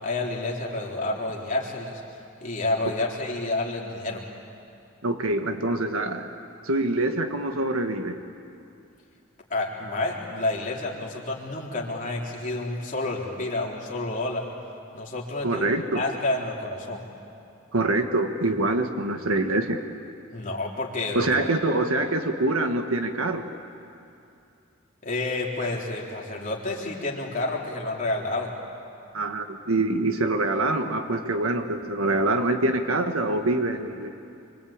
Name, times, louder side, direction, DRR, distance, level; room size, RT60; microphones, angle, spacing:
voice 1, 0.0-2.0 2.4-4.2 9.5-14.4 14.9-15.7 15.9-17.0 20.3-21.4 25.0-28.5, left 2 dB, 40° left, -2 dB, 3.7 m, -29 dB
voice 2, 5.0-6.3 6.6-8.2 15.4-16.0 17.7-19.8 21.1-23.5 29.1-34.1, right 2 dB, 85° right, 6 dB, 1.6 m, -25 dB
26.0 x 25.0 x 8.8 m, 2.6 s
head